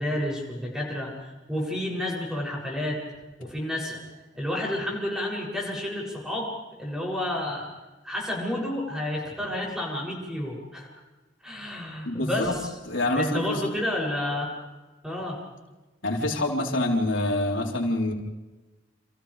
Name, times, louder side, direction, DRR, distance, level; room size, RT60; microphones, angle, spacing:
voice 1, 0.0-3.0 3.4-4.0 4.3-6.5 6.8-7.7 8.0-10.9 11.4-12.7 13.1-14.5 15.0-15.4, left 1 dB, 5° right, -2 dB, 7.6 m, -30 dB
voice 2, 12.0-12.5 12.9-13.6 16.0-18.1, left 1 dB, 90° left, -1 dB, 4.1 m, -26 dB
30.0 x 28.0 x 3.5 m, 1.2 s
head